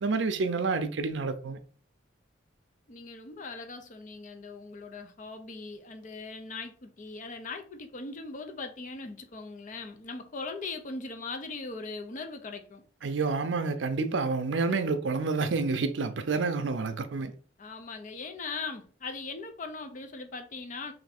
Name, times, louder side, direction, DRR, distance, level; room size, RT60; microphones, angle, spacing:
voice 1, 0.0-1.6 13.0-17.3, right 4 dB, 70° right, 0.5 m, -29 dB
voice 2, 2.9-12.8 17.6-20.9, left 3 dB, 45° left, 0.5 m, -40 dB
3.3 x 2.7 x 4.1 m
head